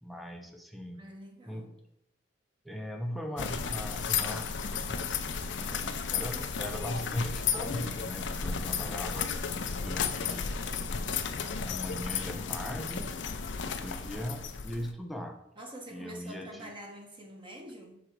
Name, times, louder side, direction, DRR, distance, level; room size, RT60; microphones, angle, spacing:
voice 1, 0.0-1.0 1.5-1.7 2.6-5.0 5.5-9.3 9.8-10.5 11.6-13.1 13.6-15.4 15.9-16.7, equal, ahead, 0.7 m, -39 dB
voice 2, 0.9-1.7 15.6-18.0, right 1 dB, 30° right, 1.1 m, -46 dB
sound 1, 3.4-14.9, left 6 dB, 80° left, 0.6 m, -33 dB
6.3 x 3.7 x 4.6 m
head